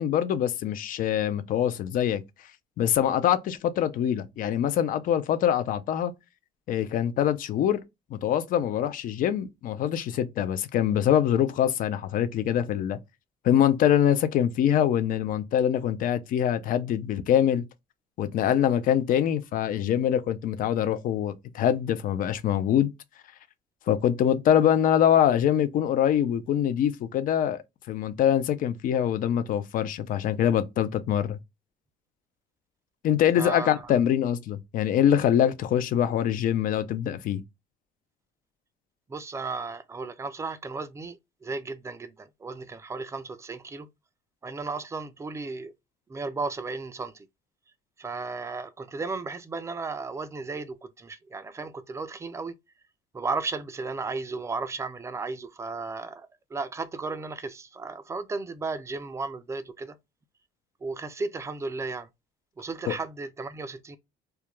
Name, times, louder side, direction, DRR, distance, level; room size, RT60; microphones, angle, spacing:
voice 1, 0.0-2.2 2.8-6.1 6.7-7.8 8.1-13.0 13.4-17.6 18.2-22.9 23.9-27.6 27.9-31.4 33.0-37.4 62.9-63.0, left 10 dB, 55° left, 0.4 m, -24 dB
voice 2, 33.3-33.9 39.1-43.9 44.4-45.7 46.1-47.3 48.0-52.6 53.1-60.0 60.8-62.1 62.6-64.0, right 3 dB, 15° right, 0.3 m, -34 dB
2.3 x 2.1 x 2.9 m
cardioid pair, 110°, 17 cm